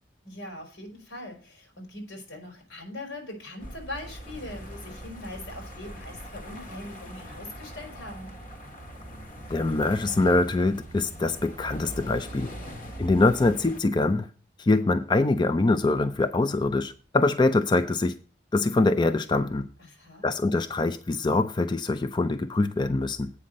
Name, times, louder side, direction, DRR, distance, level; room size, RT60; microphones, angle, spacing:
voice 1, 0.2-8.3 19.8-20.3, left 1 dB, 90° left, 4.1 m, -41 dB
sound 1, 3.6-13.8, equal, 45° left, 1.6 m, -41 dB
voice 2, 9.5-12.5 13.0-14.3 14.6-18.1 18.5-19.7 20.2-23.3, left 2 dB, 25° left, 0.4 m, -24 dB
8.5 x 5.7 x 6.3 m
head